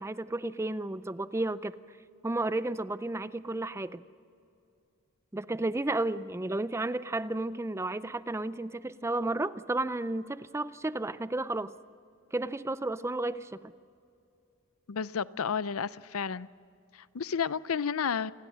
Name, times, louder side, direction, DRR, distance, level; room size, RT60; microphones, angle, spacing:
voice 1, 0.0-1.8 2.2-4.0 5.3-11.7 12.3-13.7, right 2 dB, 10° right, 0.4 m, -32 dB
voice 2, 14.9-16.5 16.9-18.3, left 6 dB, 80° left, 0.6 m, -31 dB
28.0 x 20.5 x 6.3 m
head